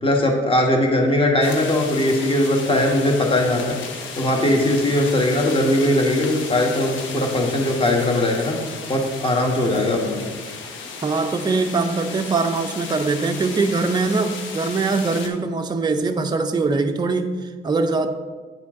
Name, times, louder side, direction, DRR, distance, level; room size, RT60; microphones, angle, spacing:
voice 1, 0.0-3.8 4.1-8.6 8.9-10.2, left 1 dB, 25° left, 0 dB, 1.5 m, -20 dB
sound 1, 1.4-15.3, left 5 dB, 75° left, 0.9 m, -34 dB
voice 2, 11.0-18.1, right 3 dB, 20° right, 5 dB, 0.5 m, -22 dB
8.9 x 4.3 x 3.7 m, 1.4 s
cardioid pair, 90°, 20 cm